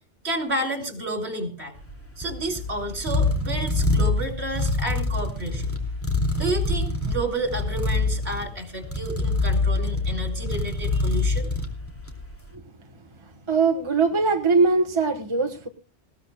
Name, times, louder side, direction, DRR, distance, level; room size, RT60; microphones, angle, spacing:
voice 1, 0.2-1.7 2.2-5.8 6.4-11.5, right 2 dB, 65° right, 3.6 m, -30 dB
sound 1, 1.8-12.3, left 3 dB, 10° left, 2.8 m, -25 dB
voice 2, 13.5-15.7, right 4 dB, 25° right, 1.4 m, -21 dB
20.0 x 16.5 x 2.3 m
omnidirectional pair, 1.2 m